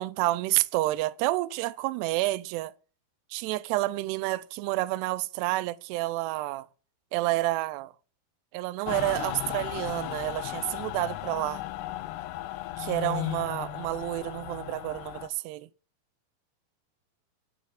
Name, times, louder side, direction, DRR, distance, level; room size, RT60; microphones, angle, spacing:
voice 1, 0.0-2.7 3.3-6.7 7.1-7.9 8.5-11.6 12.8-15.7, right 18 dB, 80° right, 2.5 m, -29 dB
Mechanical fan, 8.9-15.3, left 15 dB, 80° left, 2.5 m, -35 dB
8.8 x 6.3 x 8.0 m
omnidirectional pair, 5.2 m